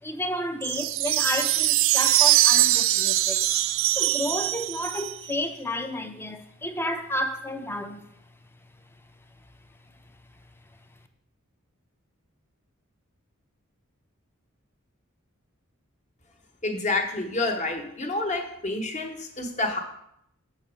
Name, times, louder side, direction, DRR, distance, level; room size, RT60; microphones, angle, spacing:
voice 1, 0.0-3.5 4.0-8.1, left 1 dB, 10° left, 7 dB, 0.6 m, -31 dB
sound 1, 0.6-5.4, right 15 dB, 65° right, 0.3 m, -22 dB
voice 2, 16.6-19.8, left 2 dB, 35° left, 4 dB, 1.1 m, -28 dB
6.9 x 4.2 x 6.2 m, 0.74 s
head